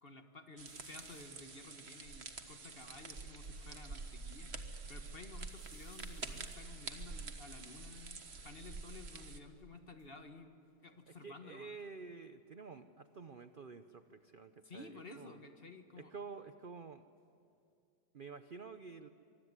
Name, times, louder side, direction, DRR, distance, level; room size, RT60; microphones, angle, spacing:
voice 1, 0.0-4.5 4.9-10.5 10.8-11.7 14.6-16.1, left 3 dB, 35° left, 6 dB, 1.6 m, -53 dB
sound 1, 0.6-9.4, right 4 dB, 35° right, 1.5 m, -47 dB
sound 2, 0.7-1.5 2.1-2.2 2.3-3.9 4.4-5.0 5.4-8.8 9.7-11.6 11.9-12.4 13.9-16.6 16.9-17.7, left 4 dB, 60° left, 2.8 m, -69 dB
voice 2, 11.2-15.4 16.0-17.0 18.1-19.1, right 4 dB, 60° right, 10 dB, 0.5 m, -50 dB
24.5 x 24.0 x 9.7 m, 2.4 s
omnidirectional pair, 2.0 m